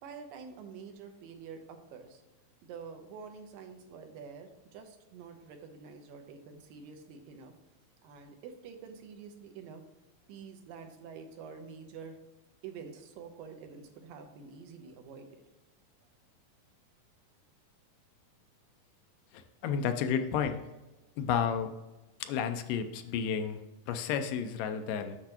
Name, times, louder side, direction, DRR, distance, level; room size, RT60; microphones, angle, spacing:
voice 1, 0.0-2.2 2.6-7.5 8.0-9.8 10.3-12.2 12.6-15.4, right 5 dB, 85° right, 5 dB, 2.5 m, -47 dB
voice 2, 19.3-20.6 21.2-21.7 22.2-25.2, left 7 dB, 80° left, 8 dB, 2.1 m, -32 dB
8.0 x 6.4 x 2.9 m, 1.1 s
omnidirectional pair, 4.0 m